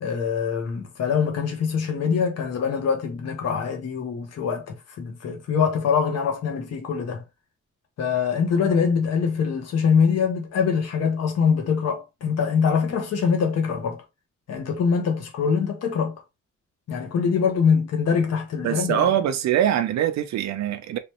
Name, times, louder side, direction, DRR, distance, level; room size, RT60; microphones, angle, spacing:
voice 1, 0.0-7.2 8.0-14.0 14.5-16.1 16.9-19.2, left 6 dB, 55° left, 1.0 m, -23 dB
voice 2, 18.6-21.0, right 10 dB, 60° right, 0.6 m, -23 dB
3.2 x 3.1 x 3.0 m
cardioid pair, 175°, 30 cm